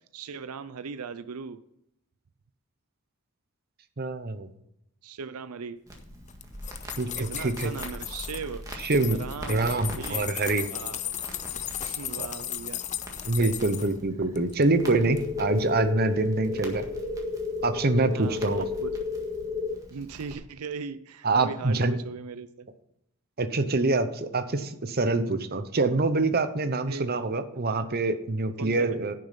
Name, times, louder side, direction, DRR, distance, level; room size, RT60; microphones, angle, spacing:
voice 1, 0.1-1.6 5.0-5.8 7.2-8.6 9.1-10.3 10.7-11.0 11.8-12.8 13.4-13.9 18.2-18.9 19.9-22.7 26.9-27.0 28.6-29.0, right 5 dB, 85° right, 13 dB, 0.5 m, -38 dB
voice 2, 4.0-4.5 7.0-7.7 8.8-9.2 9.5-10.7 12.2-12.3 13.3-16.8 17.6-18.7 21.2-22.0 23.4-29.1, right 3 dB, 45° right, 10 dB, 0.8 m, -25 dB
Crackle, 5.9-20.3, equal, 15° right, 1.7 m, -44 dB
sound 1, 6.3-8.4 8.7-13.9 14.4-14.9 15.2-15.3, left 11 dB, 35° left, 0.5 m, -36 dB
sound 2, 14.8-19.7, left 5 dB, 10° left, 1.9 m, -32 dB
10.5 x 6.5 x 5.7 m, 0.79 s
head